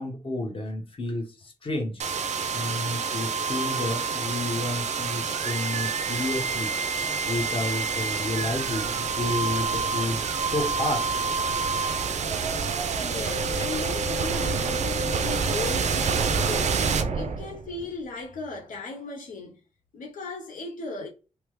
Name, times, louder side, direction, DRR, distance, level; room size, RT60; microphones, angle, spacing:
voice 1, 0.0-2.0 2.5-6.7 7.2-11.3 17.0-17.2, left 1 dB, 40° left, 1.0 m, -31 dB
sound 1, 2.0-17.8, right 5 dB, 60° right, 0.4 m, -27 dB
voice 2, 12.6-19.5 19.9-21.1, left 3 dB, 80° left, 0.6 m, -37 dB
3.3 x 2.0 x 3.0 m
wide cardioid pair, 100°, 14 cm